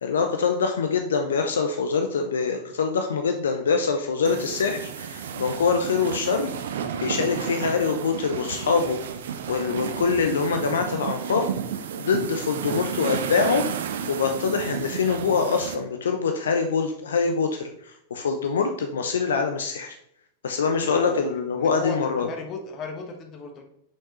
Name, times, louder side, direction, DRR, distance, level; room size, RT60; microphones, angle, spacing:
voice 1, 0.0-6.5 7.0-9.0 9.5-11.5 12.0-13.6 14.1-17.7 18.1-20.0 20.4-22.3, left 5 dB, 65° left, 6 dB, 0.6 m, -24 dB
sound 1, 4.2-15.7, right 7 dB, 60° right, 0.6 m, -32 dB
voice 2, 20.8-23.6, left 4 dB, 35° left, 3 dB, 1.2 m, -35 dB
6.6 x 5.5 x 3.1 m, 0.72 s
figure-of-eight pair, 90°, 0 cm